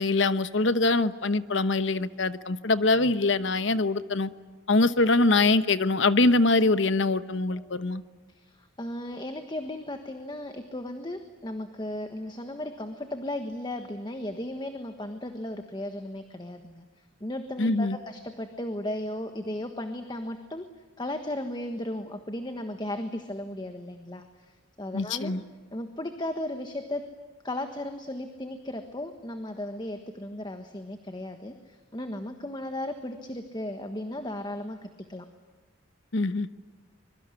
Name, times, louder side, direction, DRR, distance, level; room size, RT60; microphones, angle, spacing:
voice 1, 0.0-4.3 4.7-8.0 17.6-18.0 24.9-25.4 36.1-36.5, left 2 dB, 65° left, 13 dB, 1.1 m, -23 dB
voice 2, 8.3-20.7 21.0-25.3 25.7-27.1 27.4-35.3, left 1 dB, 20° left, 7 dB, 1.4 m, -36 dB
25.0 x 22.5 x 9.8 m, 1.3 s
head